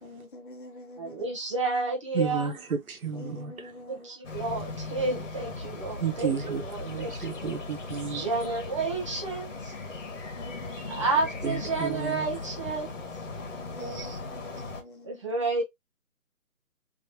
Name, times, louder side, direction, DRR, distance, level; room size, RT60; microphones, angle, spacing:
voice 1, 0.0-1.3 3.1-4.2 5.1-5.2 8.2-8.5 10.3-11.2 13.6-15.3, left 1 dB, 35° left, 1.2 m, -46 dB
voice 2, 1.0-2.6 3.9-7.6 8.2-9.7 10.9-12.9 15.0-15.6, right 3 dB, 20° right, 0.7 m, -31 dB
voice 3, 2.1-2.5 2.9-3.5 6.0-8.3 11.4-12.3 13.8-14.2, right 6 dB, 75° right, 1.1 m, -32 dB
sound 1, 4.2-14.8, left 3 dB, 55° left, 1.3 m, -38 dB
3.0 x 3.0 x 2.7 m
figure-of-eight pair, 155°, 43 cm